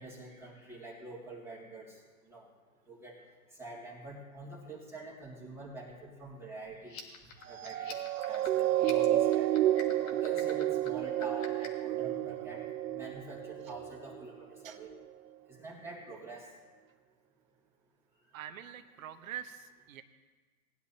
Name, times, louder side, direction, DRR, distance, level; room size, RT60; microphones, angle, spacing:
voice 1, 0.0-2.0 2.3-2.5 2.9-3.2 3.6-7.0 7.5-8.0 8.3-9.7 10.1-12.7 12.9-14.9 15.5-16.5, right 2 dB, 5° right, -6 dB, 2.4 m, -46 dB
sound 1, 6.8-11.9, left 6 dB, 60° left, 2.2 m, -48 dB
sound 2, 7.5-14.2 14.8-15.0, right 13 dB, 85° right, 0.6 m, -30 dB
voice 2, 18.3-20.0, right 10 dB, 65° right, 8 dB, 1.0 m, -44 dB
19.5 x 10.5 x 2.8 m, 1.3 s
hypercardioid pair, 120°, 44 cm